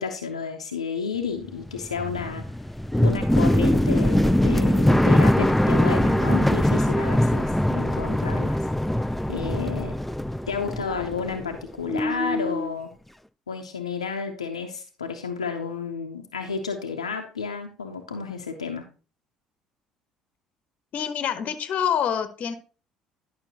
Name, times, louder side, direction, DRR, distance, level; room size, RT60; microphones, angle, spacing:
voice 1, 0.0-2.4 3.0-8.7 9.3-9.9 10.5-12.9 13.5-18.8, left 5 dB, 85° left, 4 dB, 0.8 m, -31 dB
sound 1, 1.5-11.6 11.9-12.7, left 1 dB, 5° left, 0.3 m, -22 dB
voice 2, 20.9-22.5, left 8 dB, 50° left, 10 dB, 1.1 m, -26 dB
11.5 x 5.8 x 2.9 m, 0.36 s
figure-of-eight pair, 55°, 3 cm